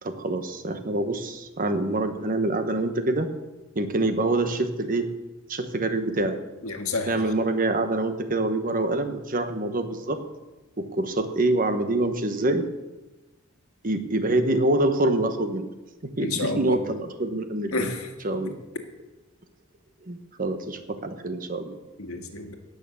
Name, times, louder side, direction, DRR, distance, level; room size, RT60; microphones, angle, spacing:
voice 1, 0.0-3.3 3.7-5.1 5.5-6.4 7.1-10.2 10.8-12.6 13.8-15.6 16.0-17.9 18.2-18.6 20.1-21.8, right 2 dB, 40° right, 7 dB, 1.2 m, -26 dB
voice 2, 6.6-7.1 16.2-16.8 17.7-18.1 22.0-22.6, left 3 dB, 85° left, 4 dB, 1.9 m, -30 dB
18.0 x 6.6 x 7.1 m, 1.1 s
head